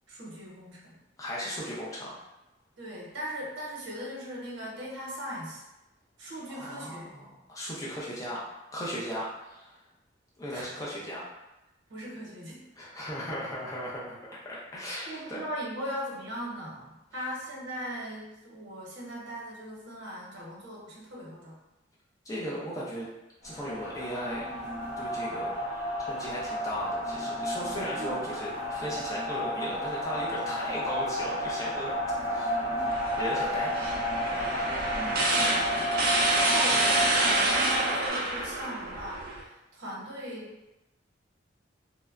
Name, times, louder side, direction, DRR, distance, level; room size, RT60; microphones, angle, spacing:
voice 1, 0.1-0.9 2.8-5.6 6.2-7.1 10.5-10.7 11.9-12.6 15.1-21.6 28.0-28.2 34.9-35.8 36.4-40.5, equal, 80° right, -4 dB, 0.8 m, -39 dB
voice 2, 1.2-2.1 6.5-8.4 8.7-9.7 10.4-11.2 12.8-14.2 14.4-15.4 22.2-23.1 23.4-24.4 25.0-25.5 26.1-31.9 32.3-32.6 33.2-33.7, equal, 15° left, -6 dB, 0.4 m, -36 dB
sound 1, 23.4-38.1, equal, 70° left, 1.0 m, -32 dB
sound 2, 32.9-39.4, right 2 dB, 50° right, 0.4 m, -28 dB
2.8 x 2.1 x 2.3 m, 0.96 s
head